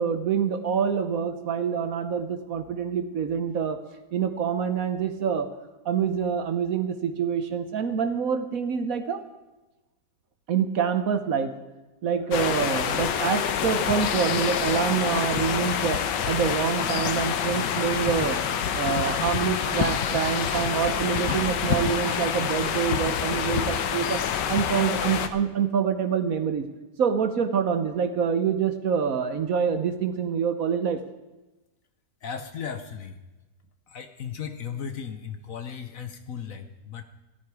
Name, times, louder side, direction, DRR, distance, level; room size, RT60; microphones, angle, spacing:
voice 1, 0.0-3.8 4.1-5.5 5.8-9.2 10.5-11.5 12.0-18.5 18.7-24.2 24.5-26.7 27.0-31.0, right 7 dB, 60° right, 9 dB, 1.1 m, -26 dB
sound 1, 12.3-25.3, left 8 dB, 75° left, 1.5 m, -27 dB
voice 2, 32.2-33.2 33.9-37.0, left 7 dB, 55° left, 8 dB, 1.1 m, -36 dB
14.0 x 13.0 x 4.8 m, 1.1 s
omnidirectional pair, 1.9 m